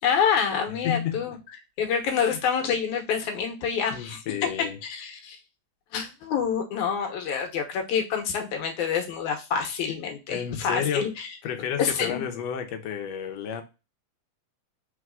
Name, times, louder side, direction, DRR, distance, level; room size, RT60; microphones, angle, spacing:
voice 1, 0.0-1.4 1.8-4.2 4.8-5.4 5.9-11.3 11.8-12.2, left 7 dB, 90° left, 2.4 m, -27 dB
voice 2, 0.8-1.3 2.2-2.4 3.9-4.8 10.3-11.1 11.4-13.6, left 8 dB, 70° left, 1.9 m, -31 dB
4.6 x 3.9 x 2.4 m
omnidirectional pair, 3.4 m